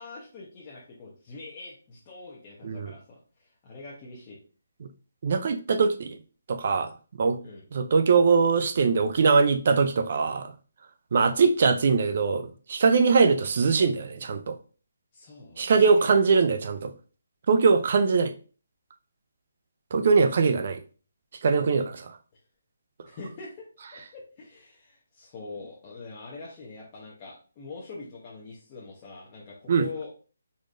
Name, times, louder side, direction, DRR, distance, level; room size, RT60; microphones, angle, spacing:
voice 1, 0.0-4.4 7.4-7.6 15.1-16.1 23.1-23.6 23.9-30.1, left 3 dB, 25° left, 0.9 m, -43 dB
voice 2, 5.2-6.2 6.5-6.9 7.2-7.4 7.7-10.5 11.1-14.6 15.6-16.9 17.5-18.3 19.9-20.8 21.4-22.2 29.7-29.9, right 5 dB, 50° right, 0.5 m, -22 dB
4.0 x 3.1 x 2.5 m
hypercardioid pair, 160°, 0 cm